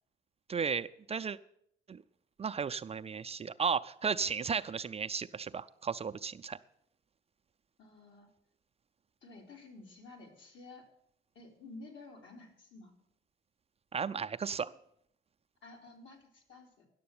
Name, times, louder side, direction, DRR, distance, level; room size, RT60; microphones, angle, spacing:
voice 1, 0.5-1.4 1.9-2.0 2.4-6.6 13.9-14.7, right 6 dB, 30° right, 9 dB, 0.4 m, -34 dB
voice 2, 7.8-8.3 9.2-10.8 11.3-12.9 15.6-16.9, left 3 dB, 75° left, 1 dB, 3.0 m, -52 dB
10.5 x 6.8 x 8.6 m, 0.72 s
cardioid pair, 90°, 20 cm